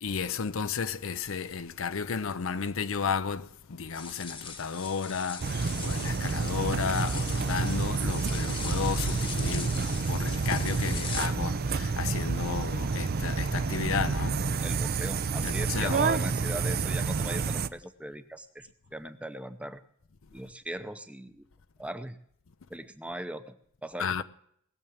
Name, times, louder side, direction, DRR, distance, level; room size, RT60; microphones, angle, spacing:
voice 1, 0.0-14.5 15.4-16.0 24.0-24.2, left 6 dB, 65° left, 0.6 m, -33 dB
sound 1, 3.9-11.3, left 6 dB, 25° left, 1.2 m, -40 dB
sound 2, 5.4-17.7, right 4 dB, 45° right, 0.5 m, -29 dB
voice 2, 14.6-19.8 20.3-21.5 21.8-22.2 22.7-23.6 23.8-24.2, right 1 dB, 5° right, 0.7 m, -39 dB
20.0 x 7.1 x 7.0 m
head